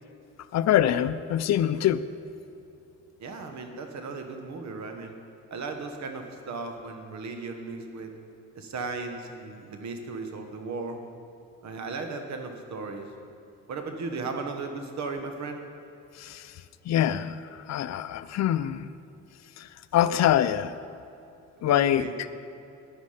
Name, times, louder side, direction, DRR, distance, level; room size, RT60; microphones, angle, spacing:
voice 1, 0.5-2.0 16.2-16.5 16.9-18.9 19.6-19.7 19.9-20.7 21.6-22.1, left 11 dB, 60° left, 14 dB, 0.5 m, -24 dB
voice 2, 3.2-5.2 5.5-8.1 8.5-11.0 11.6-13.3 13.7-15.6 21.6-22.1, right 4 dB, 65° right, 5 dB, 1.4 m, -36 dB
10.5 x 9.6 x 5.0 m, 2.7 s
cardioid pair, 90°, 30 cm